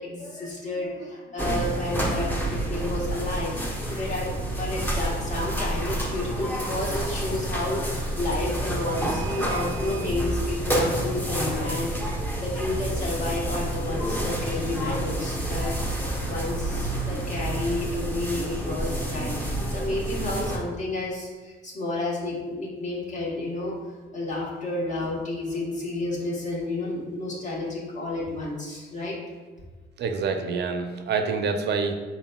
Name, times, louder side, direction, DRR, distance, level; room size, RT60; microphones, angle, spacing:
voice 1, 0.0-3.5 3.9-12.0 12.4-15.7 16.3-19.4 19.7-23.7 24.1-29.1, left 2 dB, 40° left, -4 dB, 1.0 m, -31 dB
sound 1, 1.4-20.6, right 1 dB, 10° left, 0.8 m, -29 dB
voice 2, 30.0-31.9, right 5 dB, 60° right, 6 dB, 0.5 m, -26 dB
4.0 x 3.9 x 2.2 m, 1.3 s
cardioid pair, 90°, 20 cm